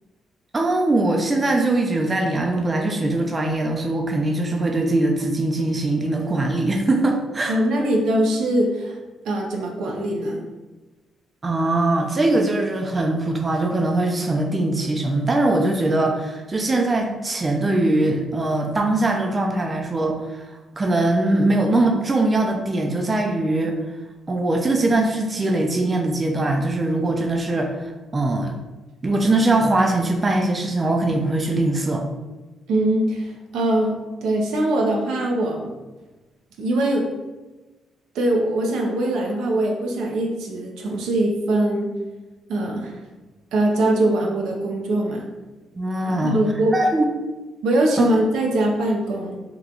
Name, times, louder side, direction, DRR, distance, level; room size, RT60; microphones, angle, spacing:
voice 1, 0.5-7.9 11.4-23.8 24.3-28.5 29.0-32.1 45.8-46.4 46.7-47.0 48.0-48.1, right 2 dB, 30° right, 2 dB, 0.4 m, -21 dB
voice 2, 7.5-9.0 9.2-10.4 32.7-35.7 36.6-37.0 38.1-41.9 42.5-42.9 43.5-45.3 46.1-46.7 47.6-49.4, right 1 dB, 85° right, 0 dB, 0.6 m, -22 dB
2.9 x 2.3 x 3.7 m, 1.2 s
cardioid pair, 90°, 0 cm